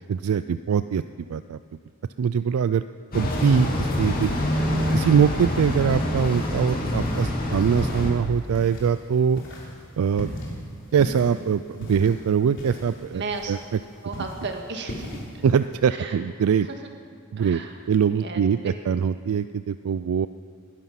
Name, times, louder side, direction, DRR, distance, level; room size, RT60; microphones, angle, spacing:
voice 1, 0.0-1.6 2.2-2.8 3.1-4.4 4.9-9.4 10.0-10.3 10.9-13.2 13.5-13.6 15.4-16.7 17.3-17.6 17.9-20.3, right 7 dB, 85° right, 13 dB, 0.4 m, -23 dB
sound 1, 3.1-8.1, left 1 dB, 45° left, 2.5 m, -26 dB
sound 2, 3.2-15.7, equal, 60° left, 3.4 m, -38 dB
voice 2, 13.1-13.6 14.0-15.2 15.9-16.2 16.6-16.7 17.4-17.7 18.1-18.7, right 4 dB, 55° right, 3 dB, 1.8 m, -34 dB
20.5 x 11.0 x 5.9 m, 2.1 s
head